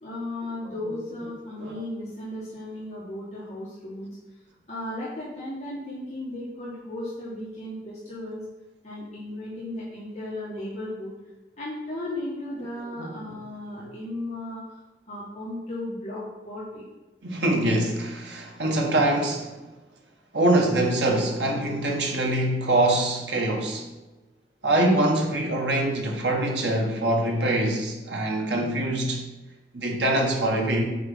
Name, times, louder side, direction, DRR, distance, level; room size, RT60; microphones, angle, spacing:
voice 1, 0.0-4.1 4.7-8.4 8.8-11.1 11.6-14.8 15.1-16.9, left 1 dB, 40° left, -9 dB, 1.9 m, -35 dB
voice 2, 17.2-19.6 20.3-23.9 24.6-29.3 29.7-30.8, right 1 dB, 80° right, 1 dB, 1.5 m, -24 dB
6.7 x 4.9 x 5.6 m, 1.1 s
head